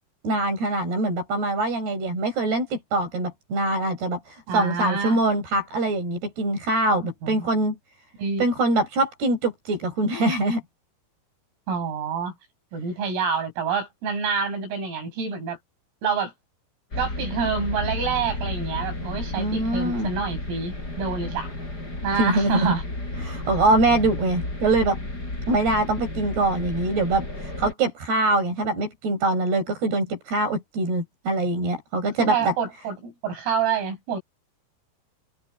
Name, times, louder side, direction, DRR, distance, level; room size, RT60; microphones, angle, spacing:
voice 1, 0.2-7.8 8.4-10.6 19.4-20.1 22.1-22.7 23.2-25.0 25.5-32.5, right 2 dB, 50° right, 9.8 m, -23 dB
voice 2, 4.5-5.2 7.2-7.5 8.2-8.5 11.7-12.3 12.7-15.6 16.0-16.3 17.0-21.5 22.0-22.8 32.2-34.2, right 6 dB, 80° right, 10.5 m, -27 dB
sound 1, 16.9-27.7, left 2 dB, 20° left, 7.5 m, -32 dB
omnidirectional pair, 6.0 m